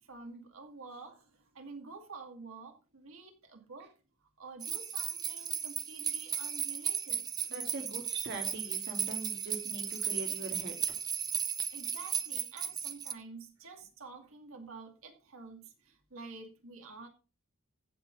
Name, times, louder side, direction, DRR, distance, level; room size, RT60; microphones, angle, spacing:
voice 1, 0.1-3.9 4.4-7.2 11.7-17.1, right 4 dB, 70° right, 3 dB, 2.4 m, -49 dB
sound 1, 4.6-13.1, right 7 dB, 20° right, 0.6 m, -35 dB
voice 2, 7.5-11.0, right 2 dB, 50° right, 2 dB, 2.1 m, -42 dB
15.5 x 6.2 x 3.9 m, 0.33 s
head